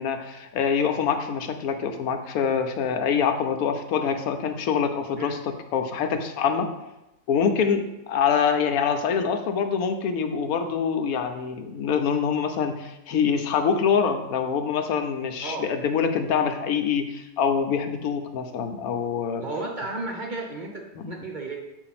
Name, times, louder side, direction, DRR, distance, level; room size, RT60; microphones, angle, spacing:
voice 1, 0.0-6.7 7.3-19.4, left 6 dB, 90° left, 7 dB, 1.1 m, -25 dB
voice 2, 19.4-21.6, right 2 dB, 45° right, -1 dB, 0.7 m, -33 dB
7.3 x 2.5 x 5.7 m, 0.94 s
omnidirectional pair, 1.5 m